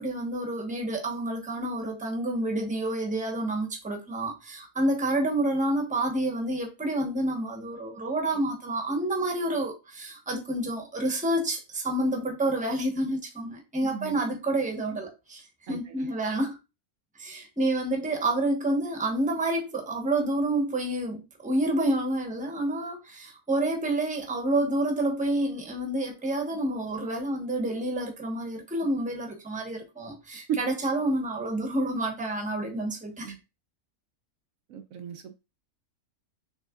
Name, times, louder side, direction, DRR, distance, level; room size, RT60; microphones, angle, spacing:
voice 1, 0.0-16.6 17.2-33.3, right 1 dB, 5° right, 0.9 m, -29 dB
voice 2, 13.8-14.2 15.7-16.1 30.5-30.6 33.2-33.4 34.7-35.4, right 8 dB, 70° right, 1.0 m, -35 dB
6.4 x 3.4 x 2.4 m
omnidirectional pair, 1.5 m